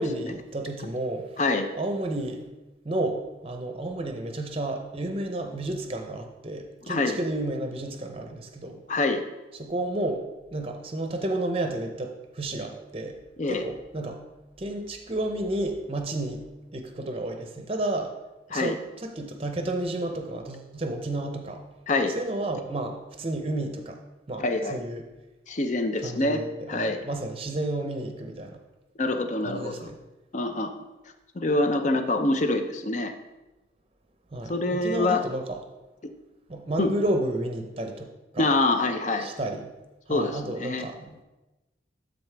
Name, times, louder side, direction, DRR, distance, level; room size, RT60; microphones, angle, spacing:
voice 1, 0.0-1.4 1.7-2.5 2.8-8.8 9.5-13.2 13.5-14.2 14.6-16.4 16.7-18.1 18.5-21.6 22.1-24.0 24.3-25.0 26.0-28.6 29.4-30.0 34.3-35.6 36.5-38.5 39.2-39.7 40.1-41.2, right 1 dB, 30° right, 5 dB, 0.6 m, -31 dB
voice 2, 1.4-1.7 6.9-7.2 8.9-9.2 13.4-13.6 18.5-18.7 21.9-22.1 24.4-24.8 25.5-26.4 26.7-27.0 29.0-29.7 30.3-30.8 31.4-33.1 34.5-35.2 36.8-36.9 38.4-39.3 40.1-40.9, left 2 dB, 40° left, 7 dB, 0.5 m, -25 dB
12.0 x 4.0 x 3.3 m, 1.1 s
head